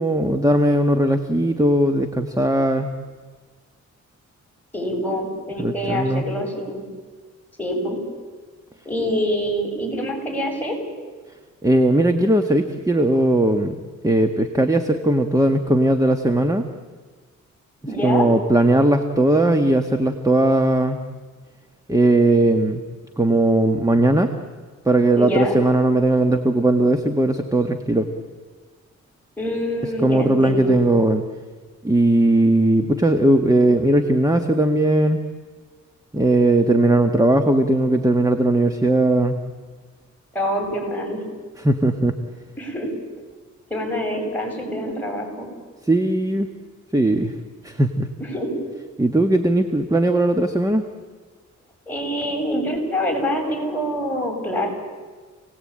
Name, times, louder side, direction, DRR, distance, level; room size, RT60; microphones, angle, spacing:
voice 1, 0.0-2.9 5.6-6.2 11.6-13.7 14.0-16.6 18.0-21.0 21.9-22.8 23.2-24.3 24.8-28.1 30.0-31.2 31.8-35.2 36.1-39.4 41.6-42.1 45.9-46.5 46.9-47.3 47.6-48.1 49.0-50.8, right 1 dB, 10° right, 6 dB, 1.6 m, -18 dB
voice 2, 4.7-6.8 7.6-8.0 8.8-10.7 17.8-18.2 25.1-25.6 29.4-30.8 40.3-41.2 42.6-42.9 43.7-45.5 48.2-48.6 51.9-54.7, equal, 5° left, 1 dB, 7.9 m, -25 dB
29.0 x 19.0 x 8.9 m, 1.4 s
cardioid pair, 85°, 30 cm